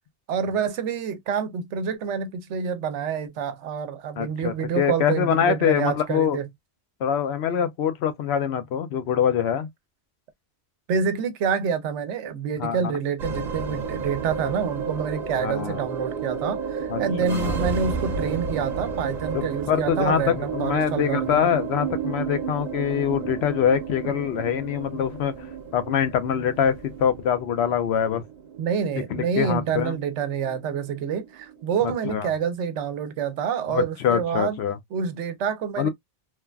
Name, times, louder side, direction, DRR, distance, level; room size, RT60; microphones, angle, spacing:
voice 1, 0.3-6.5 10.9-21.5 28.6-34.6 34.9-35.9, right 6 dB, 90° right, 0.9 m, -27 dB
voice 2, 4.2-6.4 7.0-9.7 12.6-13.0 15.4-15.8 16.9-17.6 19.3-25.5 25.7-28.2 29.1-30.0 31.8-32.3 33.7-34.8 35.8-35.9, left 8 dB, 70° left, 0.8 m, -24 dB
sound 1, 13.2-31.7, right 6 dB, 45° right, 0.7 m, -32 dB
3.2 x 2.2 x 2.3 m
omnidirectional pair, 1.1 m